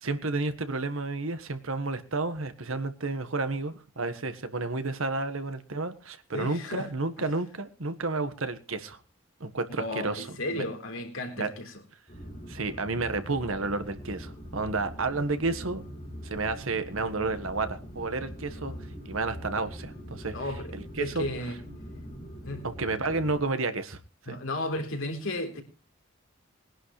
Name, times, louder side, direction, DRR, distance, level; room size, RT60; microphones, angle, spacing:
voice 1, 0.0-9.0 9.4-10.6 11.4-11.5 12.5-15.8 16.2-18.7 19.0-21.3 22.6-24.0 24.3-24.4, right 3 dB, 80° right, 1.5 m, -31 dB
voice 2, 6.3-6.9 7.2-7.3 9.8-11.7 18.6-18.8 20.3-21.6 22.4-22.7 24.3-25.6, left 1 dB, 75° left, 3.9 m, -34 dB
sound 1, 12.1-23.4, equal, 35° left, 6.1 m, -42 dB
21.0 x 11.0 x 3.2 m
head